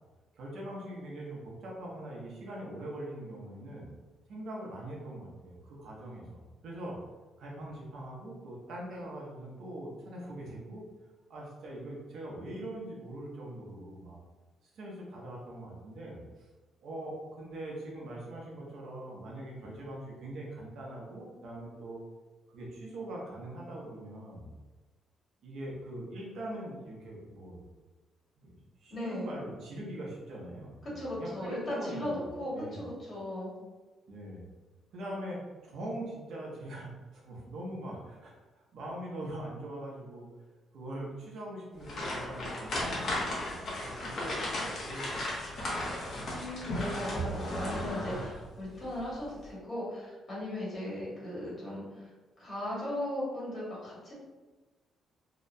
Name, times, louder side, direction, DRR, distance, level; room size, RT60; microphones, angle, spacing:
voice 1, 0.3-3.9 4.3-7.0 7.4-10.8 11.3-14.2 14.7-16.5 16.8-22.0 22.5-24.5 25.4-27.6 28.4-32.1 32.5-32.9 34.1-34.4 34.9-38.3 38.7-40.3 40.7-45.3 45.6-46.2, right 1 dB, 75° right, -3 dB, 0.7 m, -42 dB
voice 2, 28.9-29.3 30.8-33.5 46.3-52.1 52.4-54.1, left 1 dB, 40° left, -6 dB, 1.4 m, -37 dB
sound 1, 41.8-48.5 48.8-49.0 49.5-49.6, left 1 dB, 60° left, 0.8 m, -35 dB
2.8 x 2.1 x 2.6 m, 1.2 s
cardioid pair, 90°, 0 cm